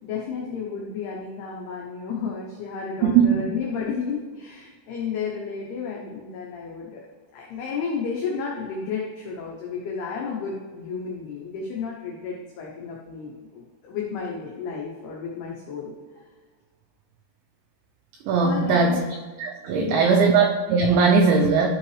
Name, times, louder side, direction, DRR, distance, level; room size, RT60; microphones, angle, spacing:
voice 1, 0.0-7.0 7.3-15.9 18.4-19.0 19.7-20.3, left 5 dB, 90° left, -2 dB, 2.3 m, -32 dB
voice 2, 3.0-3.4 18.3-19.0 19.4-21.7, right 5 dB, 90° right, 2 dB, 2.6 m, -19 dB
12.0 x 5.6 x 3.3 m, 1.4 s
omnidirectional pair, 5.9 m